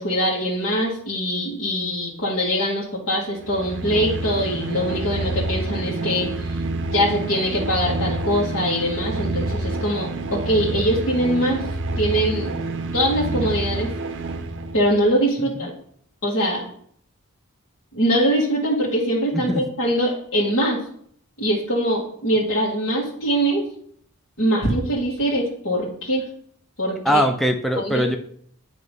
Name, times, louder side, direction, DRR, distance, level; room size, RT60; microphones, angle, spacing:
voice 1, 0.0-6.5 6.8-11.6 12.0-12.5 12.9-13.9 14.7-15.7 16.2-16.6 17.9-20.8 21.4-23.7 24.4-26.3 26.8-27.2 27.8-28.1, equal, 60° left, -6 dB, 1.6 m, -22 dB
sound 1, 3.3-15.0, right 2 dB, 55° right, 0.6 m, -28 dB
voice 2, 27.1-28.2, equal, ahead, 4 dB, 0.4 m, -21 dB
9.0 x 3.0 x 5.3 m, 0.63 s
head